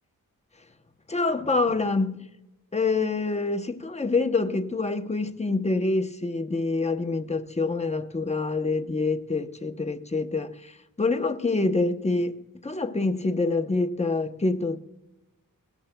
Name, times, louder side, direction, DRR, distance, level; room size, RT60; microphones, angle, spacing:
voice 1, 1.1-2.2 2.7-14.8, left 3 dB, 20° left, 0.8 m, -26 dB
17.5 x 13.0 x 2.2 m
wide cardioid pair, 80°, 35 cm